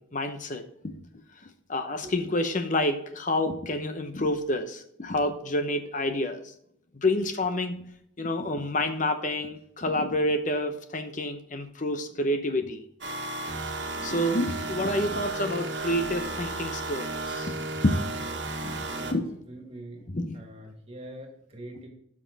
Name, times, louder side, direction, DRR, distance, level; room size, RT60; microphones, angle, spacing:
voice 1, 0.1-0.9 1.4-6.5 7.0-7.8 8.2-12.8 13.6-18.1 18.6-18.7 19.1-19.4 20.1-20.4, left 1 dB, 40° left, 7 dB, 0.8 m, -28 dB
sound 1, 13.0-19.1, right 2 dB, 65° right, 1.5 m, -33 dB
voice 2, 18.8-19.2 19.5-20.0 20.3-21.9, right 1 dB, 30° right, 2 dB, 2.1 m, -43 dB
13.0 x 6.2 x 4.0 m, 0.71 s
head